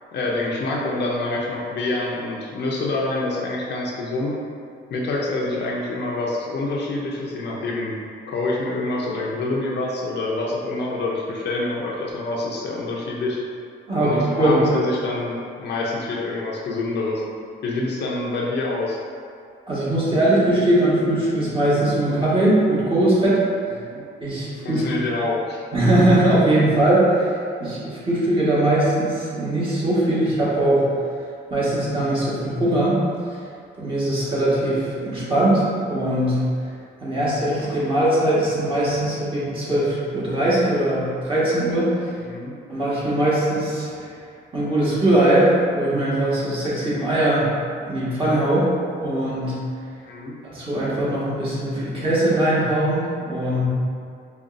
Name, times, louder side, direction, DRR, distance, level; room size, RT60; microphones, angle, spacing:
voice 1, 0.1-4.4 4.9-8.0 8.3-13.4 13.9-17.2 17.6-19.0 23.7-24.0 24.6-25.6 42.3-42.6 50.0-50.4, left 2 dB, 60° left, -3 dB, 0.6 m, -26 dB
voice 2, 13.9-14.6 19.7-23.4 24.2-24.8 25.7-27.3 27.6-30.9 31.5-33.0 33.3-33.4 33.8-36.7 37.0-42.1 42.7-44.0 44.5-47.5 47.9-48.7 49.0-49.6 50.5-53.6, right 1 dB, 25° right, -9 dB, 1.5 m, -20 dB
5.1 x 2.4 x 2.6 m, 2.3 s
cardioid pair, 90°, 20 cm